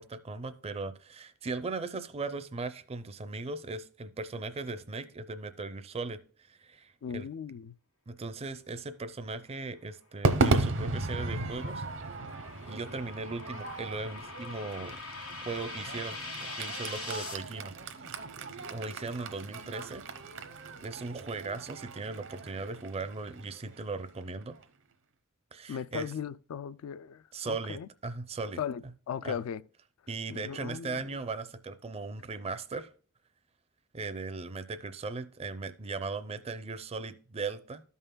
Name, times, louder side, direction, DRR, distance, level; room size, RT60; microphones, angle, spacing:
voice 1, 0.0-6.2 6.5-7.3 8.1-11.8 12.7-15.0 15.5-17.7 18.6-20.1 20.8-24.6 25.5-26.1 27.3-28.6 29.2-29.4 30.1-32.9 33.9-37.8, right 3 dB, 30° right, 0.5 m, -38 dB
voice 2, 7.0-7.7 25.7-27.9 28.6-29.6 30.3-31.1, left 8 dB, 75° left, 0.3 m, -38 dB
Crowd / Fireworks, 10.2-24.6, right 3 dB, 60° right, 0.8 m, -35 dB
sound 1, 10.6-17.3, left 3 dB, 90° left, 2.8 m, -43 dB
13.5 x 5.5 x 2.2 m
head